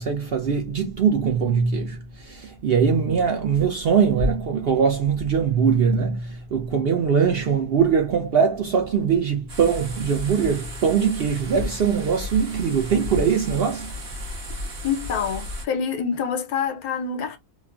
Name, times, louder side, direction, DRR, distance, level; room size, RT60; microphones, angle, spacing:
voice 1, 0.0-13.9, right 6 dB, 70° right, 0.5 m, -22 dB
sound 1, 9.5-15.7, left 1 dB, 50° right, 1.1 m, -34 dB
voice 2, 14.8-17.4, left 6 dB, 85° left, 1.2 m, -26 dB
3.1 x 2.2 x 2.4 m
omnidirectional pair, 1.6 m